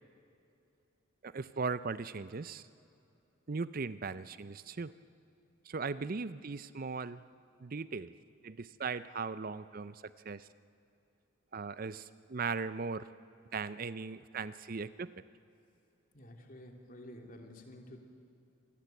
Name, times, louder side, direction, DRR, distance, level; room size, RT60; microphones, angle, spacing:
voice 1, 1.2-2.6 3.5-4.9 5.6-7.2 7.6-8.1 8.4-10.5 11.5-13.1 13.5-15.1, right 4 dB, 45° right, 15 dB, 0.5 m, -38 dB
voice 2, 16.1-18.0, left 1 dB, 40° left, 3 dB, 3.0 m, -50 dB
26.5 x 19.0 x 9.1 m, 2.7 s
head